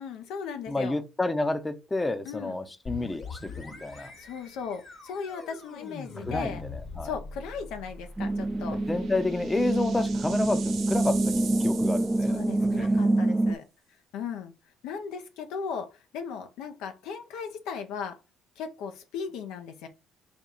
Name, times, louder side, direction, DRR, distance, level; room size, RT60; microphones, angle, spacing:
voice 1, 0.0-1.0 2.3-2.6 3.9-6.6 7.0-8.8 12.2-13.7 14.1-14.5 14.8-18.2 18.6-19.9, left 6 dB, 75° left, 0.5 m, -37 dB
voice 2, 0.7-4.1 6.3-7.1 8.7-12.4, left 2 dB, 20° left, 0.6 m, -30 dB
sound 1, 2.9-12.4, left 4 dB, 45° left, 1.1 m, -44 dB
sound 2, 6.2-6.4 6.8-6.9 8.3-13.0, right 7 dB, 65° right, 0.7 m, -43 dB
sound 3, 8.2-13.5, right 2 dB, 15° right, 0.3 m, -26 dB
4.3 x 2.3 x 3.9 m
supercardioid pair, 65°, 0 cm